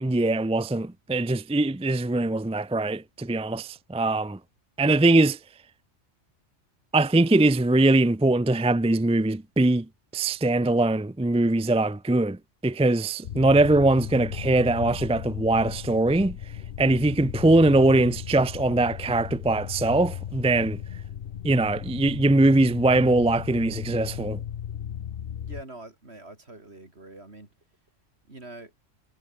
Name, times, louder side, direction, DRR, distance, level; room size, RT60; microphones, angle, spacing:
voice 1, 0.0-4.4 4.8-5.4 6.9-9.9 10.1-12.4 12.6-16.4 16.8-20.8 21.4-24.4, right 2 dB, 10° right, 0.4 m, -22 dB
sound 1, 13.2-25.6, left 9 dB, 55° left, 0.8 m, -36 dB
voice 2, 25.4-27.5 28.3-28.7, right 2 dB, 55° right, 4.5 m, -44 dB
omnidirectional pair, 1.3 m